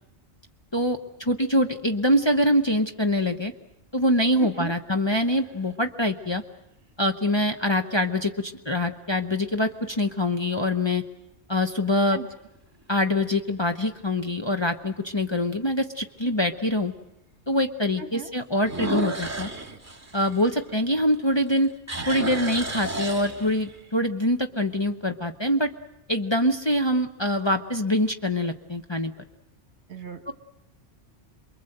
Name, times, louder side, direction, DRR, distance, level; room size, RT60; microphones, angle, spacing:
voice 1, 0.7-3.5 3.9-6.4 7.0-11.0 11.5-12.2 12.9-16.9 17.5-19.5 20.1-21.7 22.1-25.7 26.1-29.1 30.3-30.4, left 1 dB, 25° left, 4 dB, 0.9 m, -24 dB
voice 2, 4.4-4.7 12.1-12.3 18.0-18.3 29.9-30.3, right 5 dB, 65° right, 7 dB, 2.0 m, -37 dB
sound 1, 5.0-5.6 6.3-6.4 11.6-12.1 12.6-12.7 13.2-13.3 13.6-13.7 15.2-15.3 18.6-21.1 21.5-23.8, right 2 dB, 15° right, 2.3 m, -33 dB
28.0 x 22.0 x 7.9 m, 0.91 s
omnidirectional pair, 1.2 m